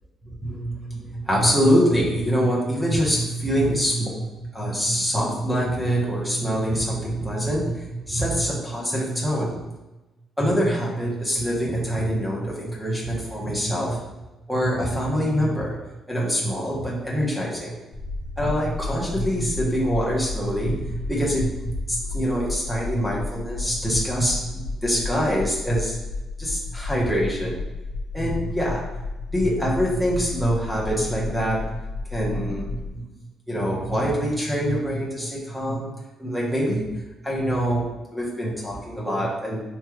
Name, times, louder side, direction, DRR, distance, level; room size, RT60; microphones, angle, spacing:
voice 1, 0.4-9.6 10.4-14.0 14.5-15.8 16.1-17.8 18.4-24.5 24.8-26.0 26.4-27.6 28.1-28.8 29.3-31.8 32.1-33.0 33.5-35.9 36.2-39.6, equal, 5° right, -4 dB, 1.0 m, -24 dB
sound 1, 17.9-32.9, left 3 dB, 30° left, 1.5 m, -33 dB
3.2 x 3.1 x 2.3 m, 1.1 s
cardioid pair, 90°, 0 cm